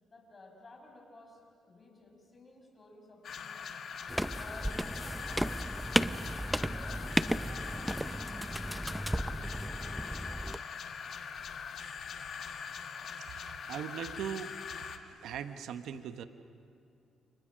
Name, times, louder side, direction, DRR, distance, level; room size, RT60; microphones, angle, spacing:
voice 1, 0.0-3.7 4.1-6.0 6.7-10.0 10.3-10.5, left 2 dB, 30° left, 2 dB, 6.3 m, -56 dB
sound 1, 3.2-15.0, left 6 dB, 60° left, 1.6 m, -42 dB
sound 2, 4.1-10.6, right 1 dB, 5° right, 0.7 m, -34 dB
sound 3, 11.0-12.7, left 6 dB, 85° left, 2.7 m, -63 dB
voice 2, 13.2-14.5 15.2-16.2, right 9 dB, 80° right, 10 dB, 1.0 m, -40 dB
30.0 x 29.5 x 6.3 m, 2.6 s
cardioid pair, 90°, 0 cm